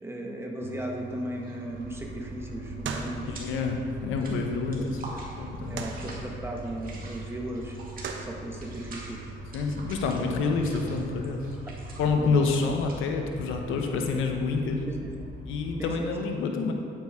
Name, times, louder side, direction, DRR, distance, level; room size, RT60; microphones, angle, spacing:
voice 1, 0.0-3.4 4.7-4.9 5.7-7.8 8.2-9.3 10.3-10.4 12.2-12.7 14.8-15.3 15.8-16.1, right 1 dB, 10° right, 0 dB, 1.3 m, -36 dB
sound 1, 0.6-12.6, right 5 dB, 70° right, 0.9 m, -42 dB
sound 2, 1.4-1.7 2.0-3.7 4.0-15.5, right 2 dB, 45° right, 2.2 m, -47 dB
sound 3, 1.7-15.9, equal, 35° left, 2.4 m, -43 dB
voice 2, 3.2-5.0 5.4-5.8 9.5-11.5 12.0-14.9 15.5-16.7, left 4 dB, 85° left, 3 dB, 0.9 m, -28 dB
9.4 x 8.8 x 3.6 m, 2.4 s
cardioid pair, 90°, 20 cm